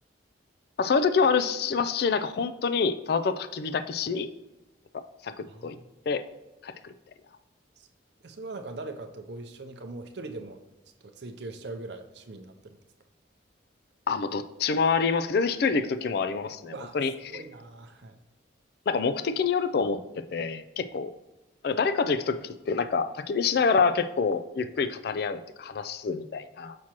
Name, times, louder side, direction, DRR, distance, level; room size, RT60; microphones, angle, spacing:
voice 1, 0.8-4.3 4.9-5.8 6.1-6.2 6.6-6.9 14.1-17.1 18.9-20.0 20.3-21.1 21.6-26.8, left 5 dB, 55° left, 12 dB, 0.3 m, -27 dB
voice 2, 5.4-5.8 7.8-7.9 8.2-10.6 11.0-12.8 16.7-17.0 17.3-18.2, right 2 dB, 65° right, 6 dB, 0.6 m, -41 dB
6.2 x 5.8 x 2.9 m, 1.0 s
head